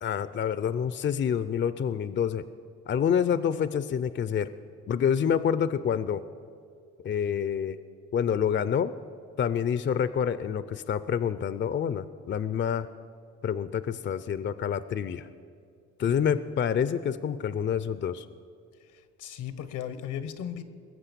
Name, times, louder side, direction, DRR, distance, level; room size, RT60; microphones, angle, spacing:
voice 1, 0.0-2.4 2.9-4.5 4.9-6.2 7.0-7.8 8.1-8.9 9.4-12.9 13.4-15.3 16.0-18.3, left 8 dB, 40° left, 14 dB, 0.5 m, -27 dB
voice 2, 16.0-16.4 18.8-20.6, left 9 dB, 80° left, 13 dB, 1.0 m, -37 dB
21.0 x 7.8 x 6.9 m, 2.3 s
cardioid pair, 90°, 30 cm